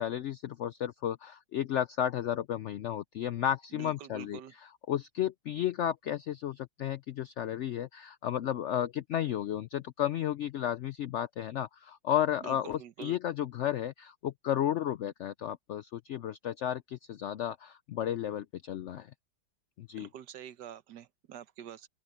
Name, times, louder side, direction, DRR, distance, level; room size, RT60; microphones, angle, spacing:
voice 1, 0.0-4.4 4.9-19.1 19.8-20.1, left 11 dB, 85° left, 0.6 m, -33 dB
voice 2, 3.7-4.5 12.4-13.1 19.9-21.9, right 10 dB, 80° right, 1.5 m, -46 dB
open air
omnidirectional pair, 1.8 m